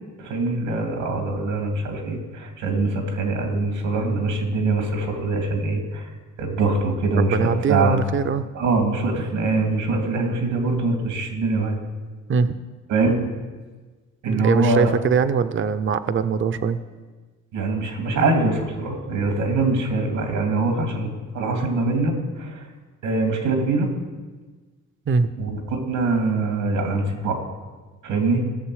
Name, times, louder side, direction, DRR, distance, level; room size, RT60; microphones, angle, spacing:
voice 1, 0.2-6.1 6.4-8.0 8.5-11.8 12.9-13.2 14.2-14.9 17.5-22.7 23.0-23.9 25.4-27.4 28.0-28.5, right 3 dB, 90° right, 3 dB, 2.5 m, -23 dB
voice 2, 7.2-8.5 12.3-12.6 14.3-16.8 25.1-25.3, right 6 dB, 40° right, 11 dB, 0.7 m, -22 dB
16.5 x 6.8 x 4.9 m, 1.3 s
cardioid pair, 90°, 30 cm